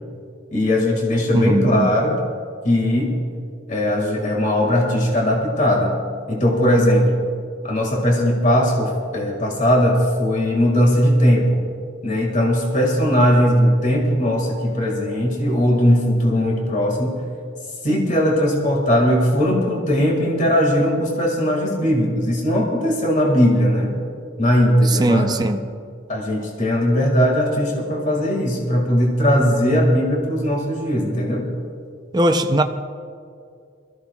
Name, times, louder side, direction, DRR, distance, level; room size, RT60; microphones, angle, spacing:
voice 1, 0.5-2.2 2.6-3.1 3.7-6.0 6.3-7.2 7.6-11.6 12.0-17.2 17.8-24.0 24.4-25.3 26.1-31.5, equal, 45° left, 0 dB, 2.1 m, -19 dB
voice 2, 1.3-1.9 24.8-25.7 32.1-32.6, right 1 dB, 20° right, 6 dB, 0.6 m, -19 dB
23.0 x 14.5 x 2.4 m, 2.3 s
head